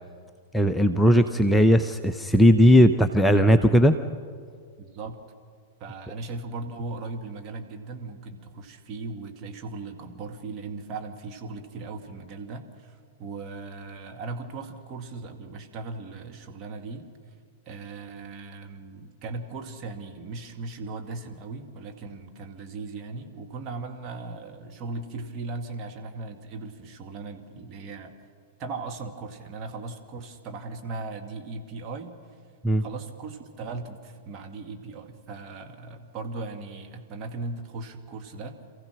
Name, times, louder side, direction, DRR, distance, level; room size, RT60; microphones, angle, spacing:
voice 1, 0.5-4.0 32.6-32.8, equal, 5° left, 7 dB, 0.7 m, -18 dB
voice 2, 4.8-5.2 5.8-17.1 17.7-28.1 28.6-32.2 32.8-38.6, right 3 dB, 35° right, 3 dB, 2.0 m, -38 dB
27.5 x 15.0 x 6.3 m, 2.1 s
figure-of-eight pair, 100°, 0 cm